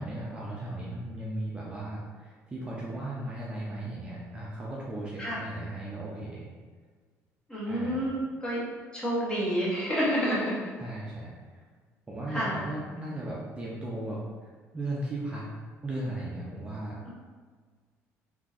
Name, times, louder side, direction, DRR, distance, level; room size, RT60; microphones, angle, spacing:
voice 1, 0.0-6.5 7.7-8.0 10.8-11.6 12.1-15.4 15.8-17.0, right 1 dB, 20° right, -5 dB, 0.5 m, -36 dB
voice 2, 7.5-8.6 8.9-10.7 12.3-12.5, equal, 15° left, -6 dB, 1.0 m, -29 dB
3.7 x 2.7 x 2.4 m, 1.5 s
cardioid pair, 125°, 5 cm